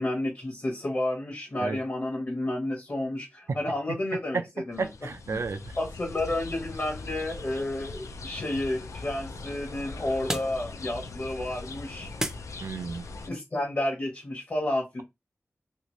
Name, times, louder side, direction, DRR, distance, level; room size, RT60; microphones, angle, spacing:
voice 1, 0.0-4.4 4.7-4.9 5.3-5.4 5.8-12.1 13.3-15.0, left 1 dB, 45° left, 0.9 m, -31 dB
sound 1, 4.7-13.3, left 3 dB, 85° left, 0.4 m, -41 dB
voice 2, 4.8-5.6 12.6-13.0, right 4 dB, 70° right, 0.4 m, -31 dB
sound 2, 7.0-13.1, right 1 dB, 10° right, 0.5 m, -41 dB
2.7 x 2.5 x 3.0 m
wide cardioid pair, 90°, 5 cm